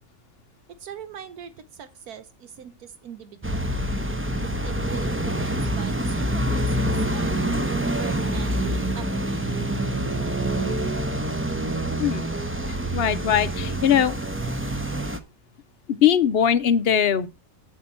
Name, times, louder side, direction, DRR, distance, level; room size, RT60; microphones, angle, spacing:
voice 1, 0.8-3.7 4.4-7.3 7.9-9.7, right 8 dB, 75° right, 1.3 m, -42 dB
sound 1, 3.4-15.2, right 1 dB, 15° right, 0.6 m, -26 dB
voice 2, 12.7-14.2 15.9-17.3, left 9 dB, 50° left, 0.8 m, -21 dB
8.5 x 8.2 x 4.3 m
omnidirectional pair, 1.6 m